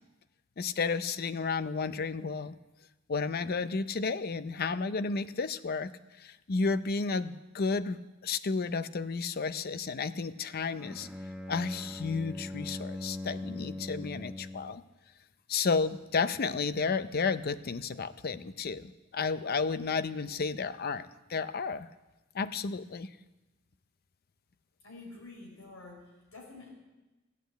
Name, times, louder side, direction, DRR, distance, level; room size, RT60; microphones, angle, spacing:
voice 1, 0.6-2.5 3.1-5.9 6.2-11.1 11.5-14.8 15.5-21.9 22.3-23.1, left 4 dB, 50° left, 13 dB, 0.5 m, -32 dB
Bowed string instrument, 10.7-14.8, left 2 dB, 5° right, 0.8 m, -40 dB
voice 2, 24.8-26.7, left 3 dB, 75° left, -1 dB, 4.7 m, -48 dB
15.0 x 8.4 x 8.1 m, 1.1 s
head